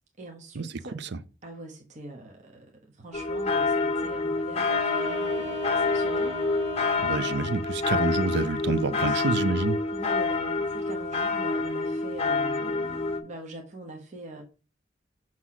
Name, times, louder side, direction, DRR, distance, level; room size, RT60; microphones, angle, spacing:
voice 1, 0.2-1.0 1.4-7.0 8.9-9.3 9.9-14.4, right 2 dB, 40° right, 1.0 m, -43 dB
sound 1, 3.1-13.2, left 3 dB, 35° left, 0.7 m, -27 dB
sound 2, 4.6-7.6, left 1 dB, 75° right, 1.5 m, -37 dB
voice 2, 7.0-9.8, right 3 dB, 60° right, 0.6 m, -27 dB
6.0 x 3.0 x 5.7 m
head